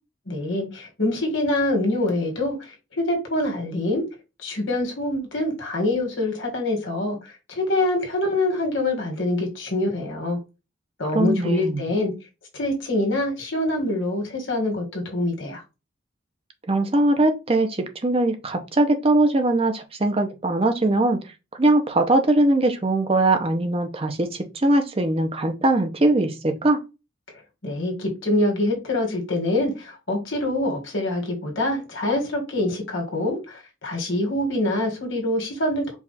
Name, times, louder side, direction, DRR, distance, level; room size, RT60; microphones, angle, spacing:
voice 1, 0.3-4.0 4.4-10.4 11.0-12.1 12.5-15.6 27.6-36.0, left 1 dB, 70° left, 1.7 m, -25 dB
voice 2, 11.1-11.8 16.7-21.2 21.6-26.8, right 2 dB, 30° right, 0.6 m, -21 dB
4.7 x 2.4 x 4.0 m
head